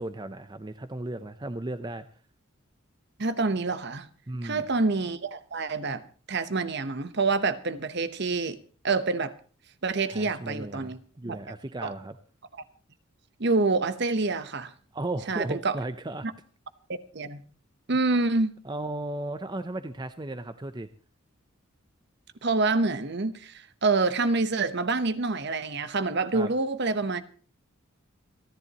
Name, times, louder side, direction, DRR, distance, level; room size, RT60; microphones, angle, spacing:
voice 1, 0.0-2.0 4.3-4.7 10.1-12.2 14.9-16.3 18.6-20.9 26.3-26.5, right 2 dB, 20° right, 0.6 m, -35 dB
voice 2, 3.2-4.1 4.4-9.3 9.8-11.0 11.2-11.4 11.8-11.9 13.4-14.7 15.3-15.8 16.2-16.3 16.9-17.4 17.9-18.5 22.4-27.4, right 3 dB, 55° right, 1.0 m, -27 dB
28.5 x 11.0 x 3.0 m
head